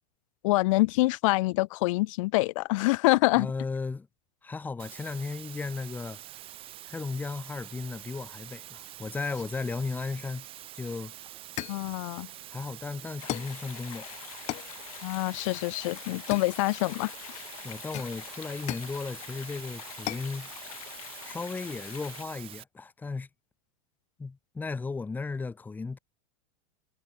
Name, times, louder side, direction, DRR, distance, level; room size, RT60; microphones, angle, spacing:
voice 1, 0.4-3.5 11.7-12.3 15.0-17.4, left 21 dB, 65° left, 0.5 m, -26 dB
voice 2, 3.4-4.1 4.4-6.2 6.9-10.5 10.7-11.1 12.5-14.1 17.6-20.9 21.3-23.3 24.2-26.0, left 4 dB, 10° left, 1.6 m, -35 dB
sound 1, 4.8-22.6, right 13 dB, 30° right, 1.8 m, -46 dB
sound 2, 10.9-11.0 11.6-11.9 13.3-13.6 14.5-14.8 16.3-16.9 17.9-19.0 20.1-20.3, left 18 dB, 40° left, 4.0 m, -37 dB
sound 3, 13.2-22.2, left 15 dB, 80° left, 7.9 m, -45 dB
supercardioid pair, 150°, 18 cm